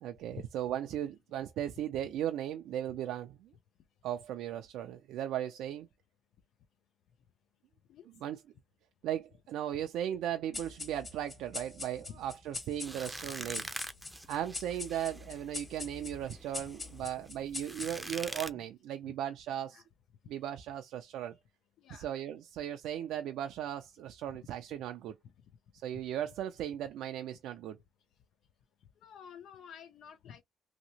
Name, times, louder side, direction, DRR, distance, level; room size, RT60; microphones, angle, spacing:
voice 1, 0.0-3.5 4.0-5.9 8.2-8.4 9.0-13.7 14.3-19.8 20.3-21.4 21.9-25.2 25.8-27.8, right 11 dB, 90° right, 0.4 m, -37 dB
sound 1, 10.5-18.3, left 3 dB, 30° left, 1.5 m, -44 dB
sound 2, 12.8-18.5, right 1 dB, 5° right, 0.6 m, -44 dB
voice 2, 29.0-30.4, left 8 dB, 75° left, 0.4 m, -50 dB
2.9 x 2.7 x 2.7 m
cardioid pair, 90°, 0 cm